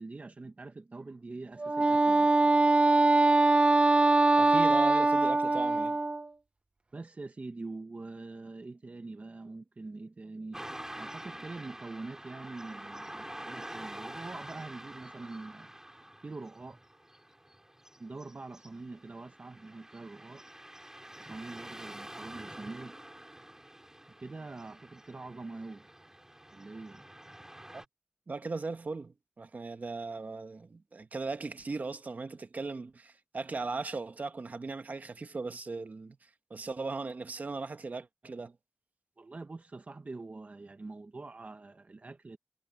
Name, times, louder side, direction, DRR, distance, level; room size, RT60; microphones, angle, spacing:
voice 1, 0.0-2.7 6.9-15.7 16.2-16.8 18.0-20.4 21.1-23.0 24.2-25.9 26.5-27.0 39.2-42.4, right 3 dB, 65° right, 1.1 m, -44 dB
Wind instrument woodwind instrument, 1.6-6.3, right 2 dB, 45° right, 0.4 m, -23 dB
voice 2, 4.4-6.0 27.7-27.8 28.3-38.6, right 3 dB, 85° right, 1.2 m, -38 dB
Car passing by / Traffic noise roadway noise, 10.5-27.8, right 1 dB, 20° right, 5.4 m, -47 dB
wide cardioid pair, 70°, 3 cm